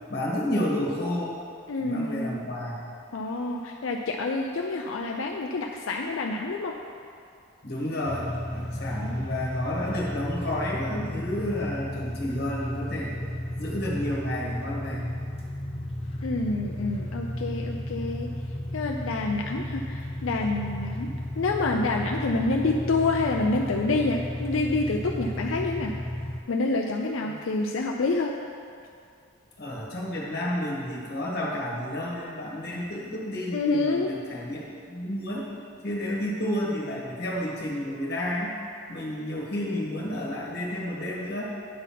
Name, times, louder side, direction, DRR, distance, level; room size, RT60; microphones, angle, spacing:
voice 1, 0.1-1.4 1.8-2.9 7.6-13.1 13.6-15.1 27.2-27.4 29.6-35.5 35.8-38.5 38.9-41.5, left 1 dB, 50° left, -3 dB, 1.6 m, -31 dB
voice 2, 1.7-2.4 3.1-6.8 16.2-18.3 18.7-25.9 26.5-28.4 33.5-34.1, left 3 dB, 85° left, 1 dB, 0.5 m, -27 dB
sound 1, 8.0-26.4, left 1 dB, 30° left, 0.6 m, -33 dB
9.5 x 4.1 x 5.7 m, 2.4 s
head